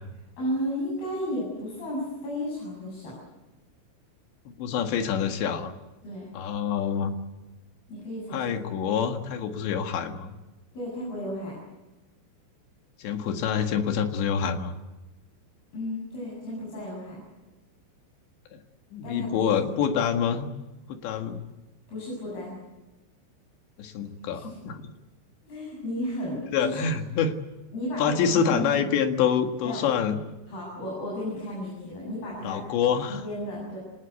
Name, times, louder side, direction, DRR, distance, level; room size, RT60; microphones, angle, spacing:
voice 1, 0.4-3.2 6.0-6.3 7.9-8.6 10.7-11.6 15.7-17.2 19.0-19.5 21.9-22.6 24.3-24.6 25.4-26.9 27.7-28.9 29.6-29.8 30.5-32.6 33.1-33.8, equal, 50° left, -5 dB, 9.4 m, -33 dB
voice 2, 4.5-5.7 6.3-7.1 8.3-10.3 13.0-14.7 18.5-18.6 18.9-20.5 20.9-21.4 23.8-24.8 26.5-27.4 28.0-30.2 32.4-33.2, left 7 dB, 65° left, 6 dB, 3.8 m, -26 dB
27.5 x 19.0 x 8.3 m, 1.1 s
omnidirectional pair, 5.8 m